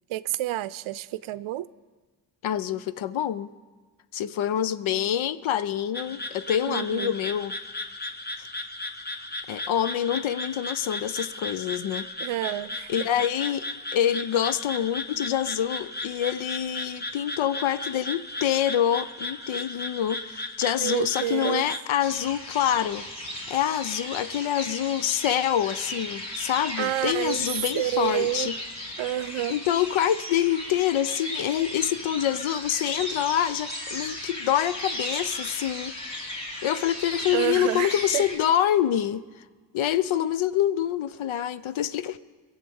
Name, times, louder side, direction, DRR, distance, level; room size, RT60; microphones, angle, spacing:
voice 1, 0.1-1.7 6.7-7.1 12.2-12.9 20.8-21.6 26.8-27.5 27.8-28.5 29.0-29.6 37.3-38.2, right 14 dB, 75° right, 17 dB, 0.6 m, -29 dB
voice 2, 2.4-3.5 4.1-7.5 8.4-8.5 9.5-12.1 12.9-13.7 13.9-23.1 23.5-28.6 29.5-39.2 39.7-42.2, left 10 dB, 70° left, 15 dB, 0.7 m, -26 dB
sound 1, 5.9-21.8, left 2 dB, 20° left, 1.0 m, -36 dB
sound 2, 22.0-38.3, left 1 dB, 50° left, 4.0 m, -36 dB
21.0 x 7.9 x 7.0 m, 1.4 s
cardioid pair, 90°, 49 cm